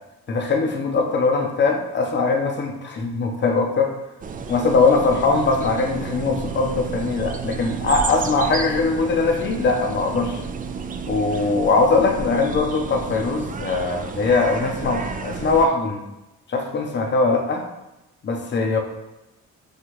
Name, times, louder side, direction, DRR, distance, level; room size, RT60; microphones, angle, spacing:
voice 1, 0.3-3.9 4.5-10.4 11.1-16.0 16.5-17.6 18.2-18.8, left 3 dB, 35° left, 3 dB, 0.7 m, -21 dB
sound 1, 4.2-15.7, right 5 dB, 30° right, 0.4 m, -31 dB
6.4 x 2.4 x 3.1 m, 0.94 s
cardioid pair, 90°, 30 cm